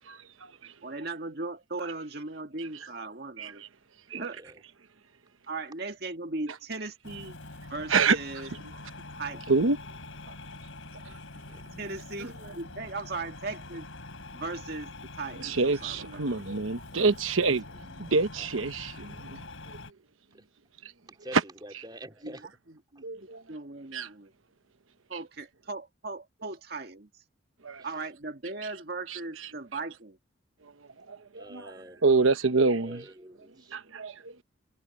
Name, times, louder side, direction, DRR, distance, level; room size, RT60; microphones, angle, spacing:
voice 1, 0.1-0.7 3.4-3.5 4.1-4.2 7.9-8.2 9.5-9.8 10.3-10.4 11.0-11.1 11.7-11.8 15.4-19.5 21.3-21.4 23.0-23.4 23.9-24.1 27.6-27.8 29.1-29.2 30.6-30.7 31.1-31.7 32.0-33.0 33.7-34.4, right 4 dB, 85° right, 1.1 m, -27 dB
voice 2, 0.8-3.6 4.1-4.4 5.5-7.4 7.7-8.5 9.2-9.4 11.8-13.9 14.3-14.9 15.2-16.3 22.2-24.3 25.1-27.2 27.8-30.2 33.5-33.9, right 3 dB, 50° right, 1.9 m, -38 dB
sound 1, 7.0-19.9, left 2 dB, 85° left, 4.0 m, -45 dB
voice 3, 21.1-22.4 23.0-23.1 31.3-32.0 32.8-33.8, right 1 dB, 20° right, 3.0 m, -46 dB
head